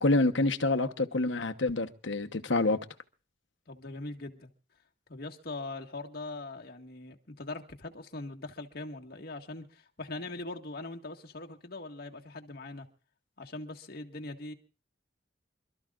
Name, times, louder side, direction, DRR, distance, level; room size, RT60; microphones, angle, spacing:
voice 1, 0.0-2.8, left 2 dB, 65° left, 1.1 m, -27 dB
voice 2, 3.7-4.5 5.1-12.9 13.4-14.5, left 2 dB, 50° left, 1.8 m, -41 dB
27.5 x 13.5 x 2.5 m
head